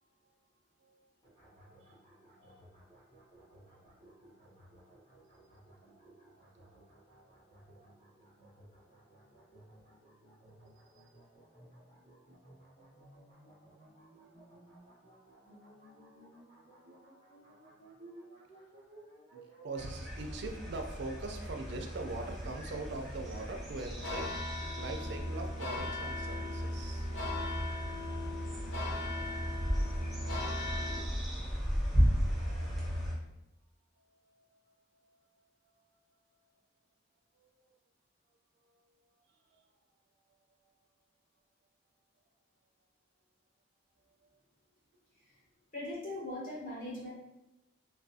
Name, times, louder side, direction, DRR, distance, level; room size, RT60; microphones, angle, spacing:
sound 1, 1.2-19.7, right 1 dB, 25° left, 0.9 m, -58 dB
voice 1, 1.5-1.9 2.3-2.6 3.5-3.6 3.9-4.2 4.4-4.5 4.8-5.0 5.9-6.8 7.2-7.3 7.6-7.9 8.4-8.5 10.9-11.0 13.7-14.7 15.0-16.3 16.6-18.4 19.3-24.3 24.8-27.1 29.3-30.4 33.0-33.3 34.1-34.6 35.0-36.6 37.4-37.6 39.5-39.6 44.2-44.3, right 3 dB, 65° right, 4 dB, 0.3 m, -45 dB
sound 2, 19.8-33.1, equal, ahead, 0.5 m, -35 dB
sound 3, 22.0-31.0, left 3 dB, 85° left, 0.6 m, -41 dB
voice 2, 45.7-47.1, left 1 dB, 45° left, -8 dB, 1.1 m, -40 dB
2.4 x 2.2 x 2.6 m, 0.95 s
head